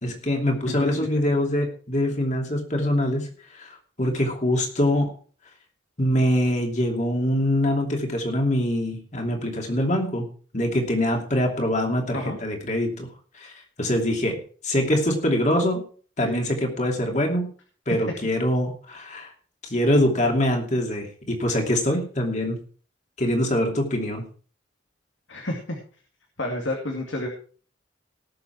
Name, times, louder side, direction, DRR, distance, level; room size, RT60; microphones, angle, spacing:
voice 1, 0.0-5.1 6.0-10.3 10.5-13.1 13.3-15.8 16.2-17.5 17.9-19.3 19.6-22.6 23.2-24.2, left 1 dB, 40° left, 2 dB, 2.8 m, -24 dB
voice 2, 0.7-1.1 12.1-12.4 16.2-16.4 17.9-18.1 25.3-25.8 26.4-27.3, left 1 dB, 75° left, 1 dB, 2.4 m, -30 dB
18.5 x 7.0 x 4.6 m, 0.43 s
head